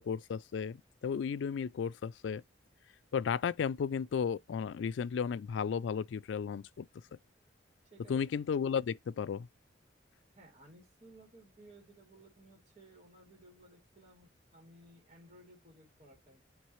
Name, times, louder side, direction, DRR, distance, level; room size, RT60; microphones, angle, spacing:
voice 1, 0.0-2.4 3.1-6.9 8.1-9.5, left 6 dB, 75° left, 0.3 m, -34 dB
voice 2, 7.8-8.3 10.4-16.4, right 1 dB, 35° right, 2.8 m, -58 dB
9.3 x 3.9 x 3.1 m
head